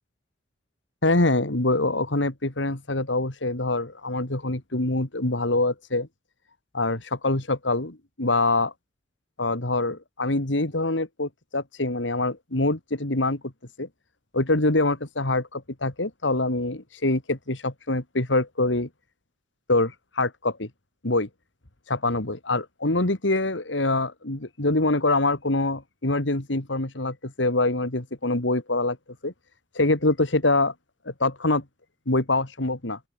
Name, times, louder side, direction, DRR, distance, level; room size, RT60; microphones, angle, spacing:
voice 1, 1.0-6.1 6.7-8.7 9.4-13.4 13.8-13.9 14.3-18.9 19.7-20.7 21.0-21.3 21.9-29.0 29.2-29.3 29.7-30.7 31.0-31.6 32.1-33.0, left 2 dB, 85° left, 2.7 m, -25 dB
open air
head